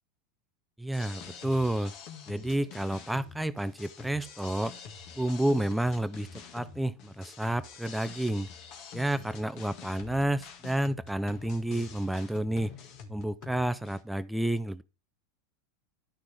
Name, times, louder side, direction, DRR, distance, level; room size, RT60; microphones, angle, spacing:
voice 1, 0.8-1.9 2.3-4.8 5.2-8.5 8.9-12.7 13.1-14.8, right 1 dB, 5° right, 0.5 m, -30 dB
sound 1, 0.9-14.0, left 6 dB, 55° left, 1.9 m, -46 dB
11.5 x 6.1 x 3.4 m
hypercardioid pair, 95°, 0 cm